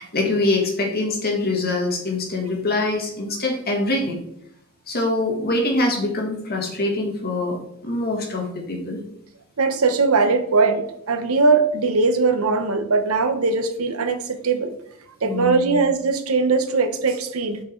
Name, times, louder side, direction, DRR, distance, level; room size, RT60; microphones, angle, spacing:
voice 1, 0.0-4.2 4.9-9.0 15.2-15.8, left 2 dB, 45° left, 1 dB, 1.8 m, -24 dB
voice 2, 9.6-14.7 15.2-17.6, right 4 dB, 85° right, 8 dB, 0.9 m, -20 dB
6.6 x 5.1 x 4.5 m, 0.74 s
head